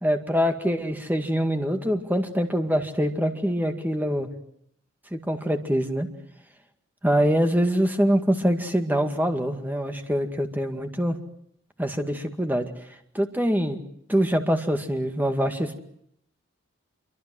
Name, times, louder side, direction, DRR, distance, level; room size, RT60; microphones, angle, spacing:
voice 1, 0.0-4.3 5.1-6.1 7.0-11.2 11.8-12.7 13.1-13.8 14.1-15.8, equal, 10° right, 5 dB, 2.1 m, -24 dB
26.5 x 24.0 x 7.8 m, 0.72 s
head